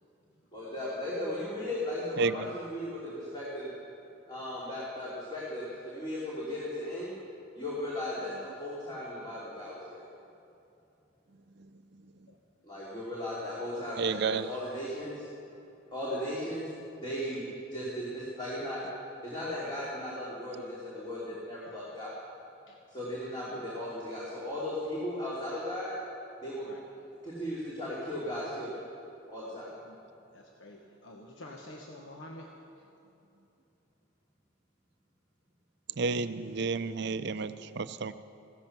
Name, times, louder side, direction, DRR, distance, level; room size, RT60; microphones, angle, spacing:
voice 1, 0.5-3.7 4.3-7.1 7.6-10.0 12.6-15.3 15.9-16.7 17.0-17.4 17.7-18.8 19.2-22.1 22.9-25.9 26.4-26.7 27.2-28.7 29.3-29.7, left 1 dB, 20° left, -8 dB, 2.9 m, -36 dB
voice 2, 14.0-14.5 36.0-38.1, right 4 dB, 55° right, 12 dB, 0.5 m, -31 dB
voice 3, 30.3-32.8, left 1 dB, 65° left, 0 dB, 1.2 m, -48 dB
16.5 x 13.5 x 6.0 m, 2.8 s
head